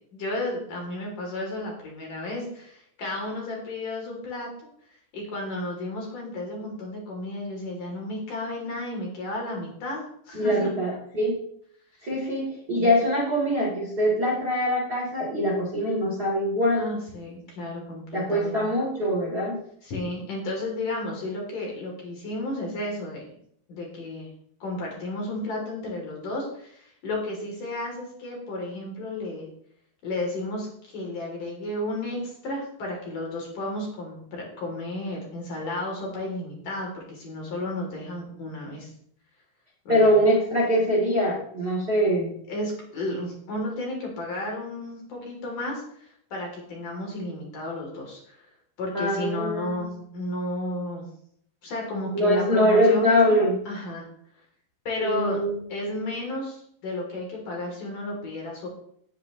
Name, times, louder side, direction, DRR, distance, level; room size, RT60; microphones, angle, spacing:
voice 1, 0.1-4.5 5.1-10.7 16.8-18.7 19.8-23.4 23.7-24.3 24.6-29.5 30.0-38.9 39.9-40.1 42.5-48.5 48.8-51.0 51.6-53.4 53.7-54.1 54.9-58.7, left 1 dB, 45° left, -1 dB, 4.2 m, -33 dB
voice 2, 10.3-11.3 12.0-16.9 18.1-19.6 39.9-42.4 48.9-49.8 52.1-53.6 55.0-55.6, equal, 25° right, -4 dB, 2.8 m, -23 dB
17.5 x 8.5 x 3.1 m, 0.65 s
omnidirectional pair, 5.6 m